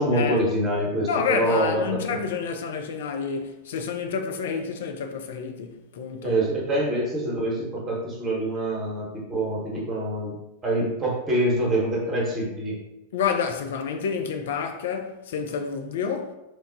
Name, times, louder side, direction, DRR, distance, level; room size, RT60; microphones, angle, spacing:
voice 1, 0.0-2.2 6.2-10.3 10.6-12.8, right 1 dB, 25° right, 1.0 m, -25 dB
voice 2, 1.1-6.4 13.1-16.3, left 6 dB, 60° left, 0.3 m, -29 dB
2.9 x 2.0 x 2.5 m
figure-of-eight pair, 90°, 0 cm